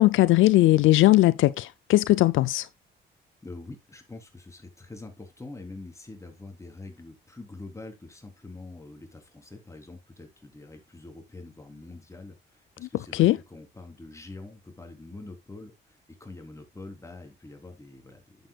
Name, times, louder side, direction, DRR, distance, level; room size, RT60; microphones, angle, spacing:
voice 1, 0.0-2.7 12.8-13.4, left 16 dB, 80° left, 0.5 m, -19 dB
voice 2, 3.4-18.4, left 2 dB, 15° left, 3.6 m, -45 dB
11.0 x 7.9 x 2.4 m
cardioid pair, 90°, 20 cm